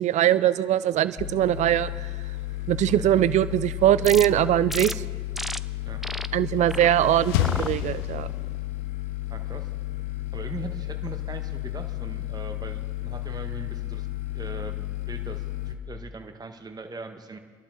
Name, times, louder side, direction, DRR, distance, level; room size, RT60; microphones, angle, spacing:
voice 1, 0.0-2.1 2.7-5.0 6.3-8.3, right 12 dB, 65° right, 16 dB, 0.6 m, -22 dB
sound 1, 1.2-15.8, left 16 dB, 60° left, 1.0 m, -33 dB
sound 2, 4.0-4.3 4.7-4.9 5.3-5.6 6.0-6.3 6.7-6.9 7.4-7.7 8.2-8.6, equal, ahead, 0.5 m, -33 dB
sound 3, 6.4-8.8, left 13 dB, 85° left, 0.5 m, -30 dB
voice 2, 9.3-9.7 10.3-14.1 14.3-17.4, right 3 dB, 30° right, 6 dB, 1.6 m, -40 dB
26.5 x 11.5 x 3.9 m, 1.5 s
hypercardioid pair, 50°, 13 cm